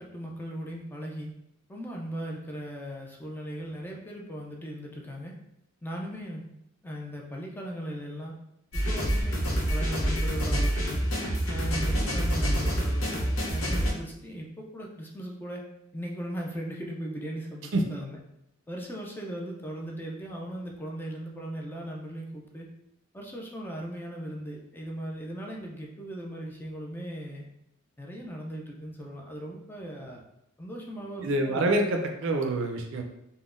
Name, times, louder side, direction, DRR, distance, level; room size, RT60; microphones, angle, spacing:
voice 1, 0.0-1.3 1.7-5.3 5.8-6.5 6.8-8.3 8.7-9.4 9.7-11.0 11.5-15.6 15.9-18.2 18.7-22.7 23.1-27.5 28.0-30.2 30.6-31.7, equal, 10° left, -1 dB, 0.4 m, -38 dB
sound 1, 8.7-13.9, equal, 80° left, 0.8 m, -27 dB
voice 2, 31.2-33.0, right 1 dB, 65° right, 3 dB, 0.4 m, -26 dB
3.7 x 2.1 x 2.4 m, 0.81 s
head